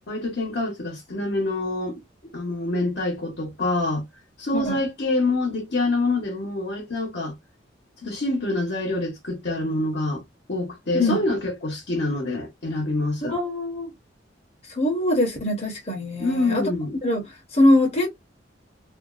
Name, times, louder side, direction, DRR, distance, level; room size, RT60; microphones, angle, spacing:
voice 1, 0.0-4.1 4.4-7.4 8.0-10.2 10.5-13.4 16.2-16.9, left 2 dB, 65° left, 1.0 m, -26 dB
voice 2, 13.3-13.9 14.7-16.6 17.0-18.1, left 1 dB, 35° left, 0.9 m, -22 dB
2.5 x 2.2 x 2.4 m
head